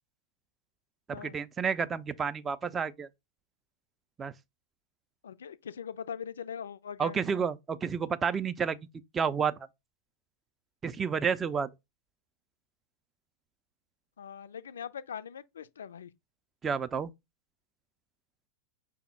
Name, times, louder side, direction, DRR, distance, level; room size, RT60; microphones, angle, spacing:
voice 1, 1.2-3.1 4.2-4.3 7.0-8.8 9.1-9.5 10.8-11.7 16.6-17.1, right 6 dB, 20° right, 0.3 m, -30 dB
voice 2, 5.2-7.2 14.2-16.1, left 7 dB, 65° left, 0.3 m, -41 dB
5.4 x 2.0 x 4.1 m
figure-of-eight pair, 90°, 0 cm